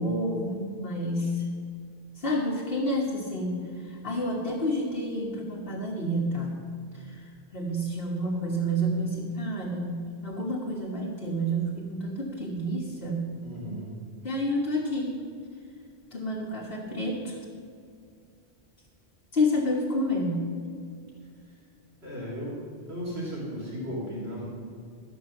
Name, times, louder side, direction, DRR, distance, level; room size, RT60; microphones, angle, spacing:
voice 1, 0.0-1.5 2.1-6.6 6.9-13.3 14.2-15.1 16.1-17.4 19.3-20.5, equal, 60° left, -4 dB, 1.6 m, -29 dB
voice 2, 13.4-13.9 22.0-22.6 22.9-24.5, equal, 85° right, -6 dB, 3.5 m, -35 dB
13.0 x 6.1 x 7.8 m, 2.2 s
omnidirectional pair, 1.1 m